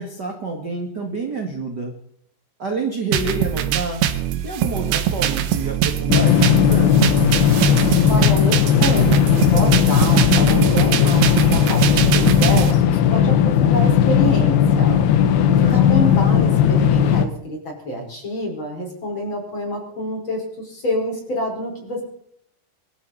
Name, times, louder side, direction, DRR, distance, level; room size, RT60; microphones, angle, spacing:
voice 1, 0.0-1.9 2.6-4.0 4.4-7.1 15.6-15.8, right 3 dB, 35° right, 1 dB, 1.7 m, -28 dB
sound 1, 3.1-12.7, right 10 dB, 75° right, 3.2 m, -22 dB
sound 2, 6.1-17.3, left 8 dB, 70° left, 2.7 m, -16 dB
voice 2, 8.1-15.0 15.7-22.0, equal, 25° left, 0 dB, 5.5 m, -27 dB
25.0 x 13.5 x 4.3 m, 0.70 s
omnidirectional pair, 5.4 m